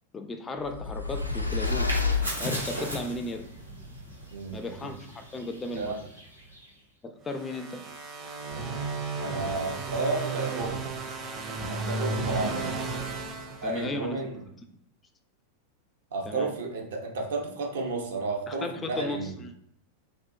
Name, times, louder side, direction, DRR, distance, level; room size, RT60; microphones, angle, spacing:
voice 1, 0.1-3.5 4.5-6.0 7.0-7.8 13.6-14.3 16.3-16.5 18.5-19.5, left 2 dB, 20° left, 7 dB, 0.3 m, -36 dB
sound 1, 0.6-3.0, left 4 dB, 90° left, 0.4 m, -29 dB
sound 2, 1.0-6.8, equal, 85° right, 1.2 m, -38 dB
sound 3, 7.3-14.2, right 3 dB, 25° right, 0.6 m, -34 dB
voice 2, 9.2-10.8 11.7-12.8 13.6-14.4 16.1-19.3, right 3 dB, 60° right, 1 dB, 0.7 m, -32 dB
3.5 x 2.6 x 2.7 m, 0.71 s
figure-of-eight pair, 90°, 0 cm